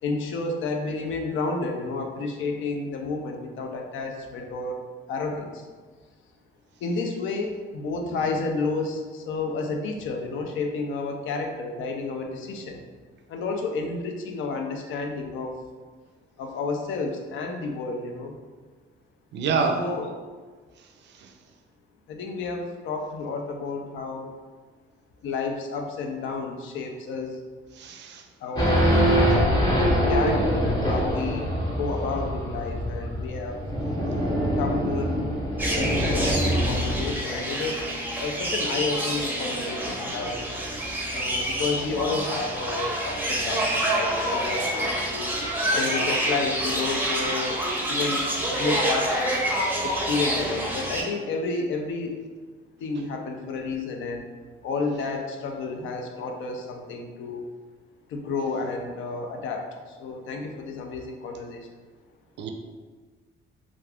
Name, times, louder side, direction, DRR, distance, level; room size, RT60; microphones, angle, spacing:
voice 1, 0.0-4.8 5.1-5.7 6.8-12.8 13.3-15.6 16.4-18.4 19.7-20.1 22.1-24.3 25.2-27.4 28.4-29.4 29.9-33.6 34.6-35.3 35.7-37.9 38.2-40.7 41.1-45.4 45.8-48.2 48.6-49.5 49.8-52.2 52.8-54.2 54.6-57.5 58.1-61.7, left 3 dB, 80° left, 3 dB, 0.5 m, -31 dB
voice 2, 19.3-19.8 27.8-28.2 62.4-62.5, right 5 dB, 65° right, 4 dB, 0.4 m, -26 dB
Race car auto racing / Idling / Accelerating revving vroom, 28.5-37.2, equal, 20° left, 0.8 m, -24 dB
sound 1, 35.6-51.0, right 1 dB, 10° right, 0.6 m, -27 dB
2.4 x 2.3 x 3.4 m, 1.4 s
cardioid pair, 90°, 20 cm